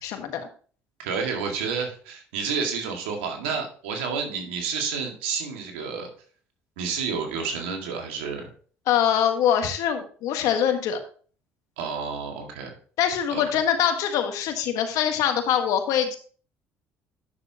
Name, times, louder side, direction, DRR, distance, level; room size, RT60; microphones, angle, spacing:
voice 1, 0.0-0.4 8.9-11.0 13.0-16.2, left 9 dB, 70° left, 6 dB, 1.5 m, -23 dB
voice 2, 1.0-6.1 6.8-8.5 11.8-12.7 13.3-13.4, right 5 dB, 90° right, 3 dB, 2.0 m, -30 dB
9.6 x 6.9 x 2.9 m, 0.42 s
supercardioid pair, 75°, 6 cm